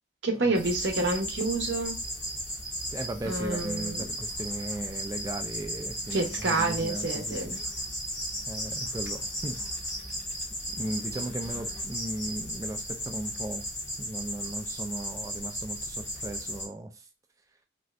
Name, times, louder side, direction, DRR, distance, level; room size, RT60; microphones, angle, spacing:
voice 1, 0.2-2.0 3.2-4.1 6.1-7.6, right 2 dB, 70° right, 0.8 m, -28 dB
sound 1, 0.5-16.6, equal, 15° left, 0.8 m, -35 dB
voice 2, 2.9-7.5 8.5-9.6 10.8-13.6 14.0-17.0, right 1 dB, 15° right, 0.3 m, -37 dB
3.2 x 2.6 x 2.4 m
head